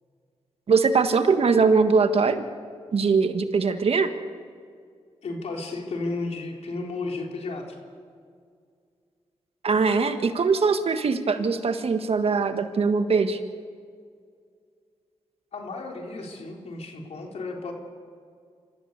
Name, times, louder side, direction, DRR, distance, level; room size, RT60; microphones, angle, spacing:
voice 1, 0.7-2.4 2.9-4.1 9.6-13.4, right 4 dB, 60° right, 8 dB, 1.6 m, -21 dB
voice 2, 5.2-7.8 15.5-17.7, left 3 dB, 70° left, 1 dB, 3.8 m, -33 dB
26.5 x 14.5 x 8.3 m, 2.2 s
cardioid pair, 60°, 11 cm